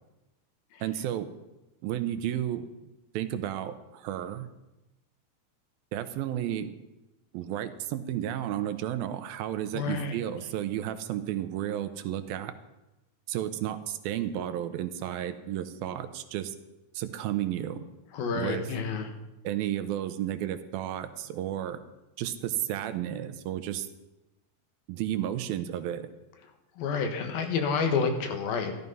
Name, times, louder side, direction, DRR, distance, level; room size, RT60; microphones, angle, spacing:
voice 1, 0.8-1.3 1.8-2.7 3.1-4.5 5.9-6.7 7.3-12.5 13.3-16.5 16.9-17.9 18.4-18.6 19.4-21.8 22.2-23.9 24.9-26.1, right 11 dB, 90° right, 10 dB, 2.6 m, -32 dB
voice 2, 9.7-10.1 18.1-19.1 26.8-28.7, left 5 dB, 80° left, 6 dB, 3.3 m, -29 dB
13.5 x 12.5 x 5.5 m, 1.0 s
omnidirectional pair, 4.2 m